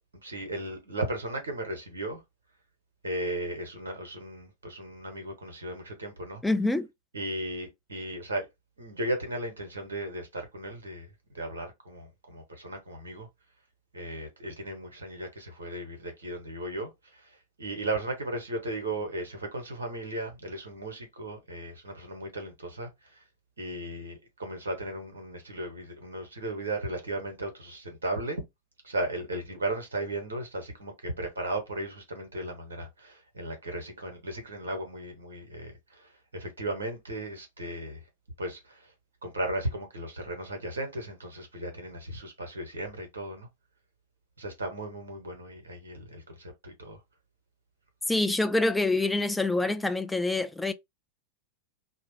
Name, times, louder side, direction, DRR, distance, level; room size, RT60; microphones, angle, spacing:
voice 1, 0.2-2.2 3.0-6.4 7.1-8.5 8.8-11.1 11.3-13.3 13.9-16.9 17.6-22.9 23.6-28.4 28.8-36.0 36.3-38.0 38.4-38.9 39.2-43.5 44.4-47.0, right 1 dB, 70° right, 1.0 m, -36 dB
voice 2, 6.4-6.9 48.1-50.7, left 2 dB, 5° left, 0.3 m, -26 dB
2.3 x 2.0 x 3.0 m
figure-of-eight pair, 90°, 0 cm